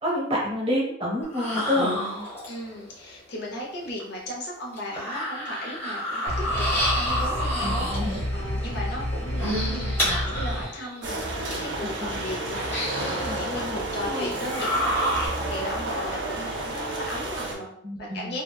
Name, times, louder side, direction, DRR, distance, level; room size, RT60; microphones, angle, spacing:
voice 1, 0.0-1.9 7.6-8.2 12.0-12.2 13.2-14.3 17.8-18.4, left 1 dB, 30° right, -3 dB, 0.7 m, -29 dB
sound 1, 1.2-2.7 4.0-4.1 4.7-8.3 9.2-10.9 11.4-11.5 12.5-13.4 14.2-15.3, equal, 10° left, 0.9 m, -28 dB
voice 2, 2.5-17.7 18.0-18.4, left 1 dB, 55° left, -2 dB, 0.7 m, -36 dB
sound 2, 6.3-10.7, equal, 85° right, 0.8 m, -29 dB
sound 3, 11.0-17.5, right 2 dB, 60° right, 0.6 m, -31 dB
2.8 x 2.2 x 2.2 m, 0.71 s
head